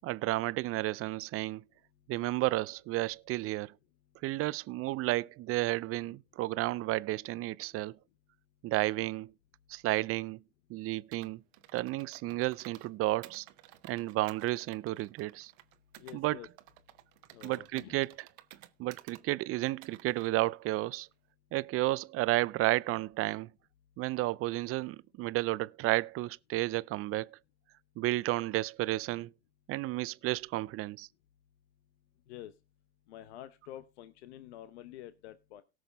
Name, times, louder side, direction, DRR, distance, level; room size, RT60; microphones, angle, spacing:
voice 1, 0.0-1.6 2.1-3.7 4.2-8.0 8.6-9.3 9.7-10.4 10.7-11.4 11.7-13.5 13.8-15.5 16.1-16.4 17.4-18.3 18.8-21.1 21.5-23.5 24.0-27.4 28.0-29.3 29.7-31.1, right 18 dB, 45° right, 0.5 m, -32 dB
Computer keyboard, 11.1-12.9 13.2-16.2 16.6-19.2 19.6-20.3, right 16 dB, 75° right, 1.0 m, -54 dB
voice 2, 16.0-16.5 17.3-18.0 32.3-32.5 33.1-35.6, left 12 dB, 85° left, 0.9 m, -48 dB
18.0 x 6.4 x 3.5 m
supercardioid pair, 100°, 32 cm